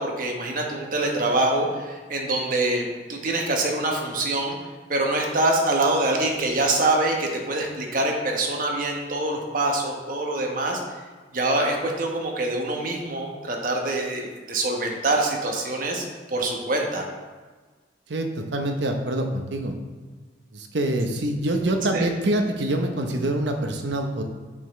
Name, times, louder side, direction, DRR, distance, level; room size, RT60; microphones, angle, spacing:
voice 1, 0.0-4.5 4.9-10.8 11.3-17.0 21.9-22.1, right 2 dB, 50° right, 1 dB, 1.1 m, -25 dB
voice 2, 18.1-19.7 20.5-24.2, right 1 dB, 75° right, 4 dB, 0.8 m, -25 dB
7.2 x 6.7 x 3.2 m, 1.4 s
head